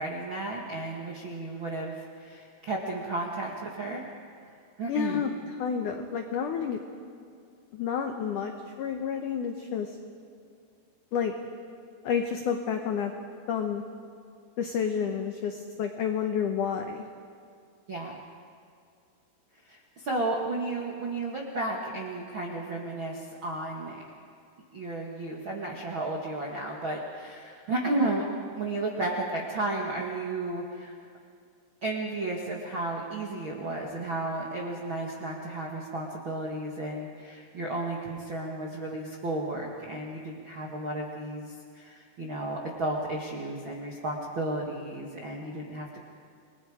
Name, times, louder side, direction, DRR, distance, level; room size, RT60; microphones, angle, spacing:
voice 1, 0.0-4.1 4.8-5.2 17.9-18.2 19.7-24.0 24.7-28.2 28.5-31.0 31.8-46.0, right 2 dB, 65° right, -2 dB, 1.2 m, -33 dB
voice 2, 4.9-5.3 5.6-6.8 7.7-8.5 8.8-10.0 11.1-11.3 12.0-13.1 13.5-13.8 14.6-17.0, left 7 dB, 85° left, 4 dB, 1.8 m, -30 dB
30.0 x 21.0 x 5.0 m, 2.3 s
omnidirectional pair, 5.2 m